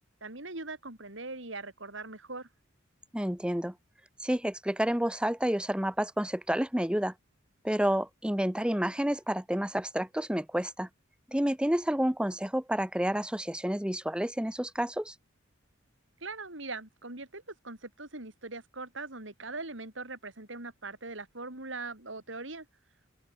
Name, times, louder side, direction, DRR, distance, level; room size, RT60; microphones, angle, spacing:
voice 1, 0.2-2.5 16.2-22.7, right 3 dB, 65° right, 4.3 m, -41 dB
voice 2, 3.1-3.7 4.2-7.1 7.6-10.9 11.3-15.1, equal, 5° right, 0.9 m, -29 dB
open air
head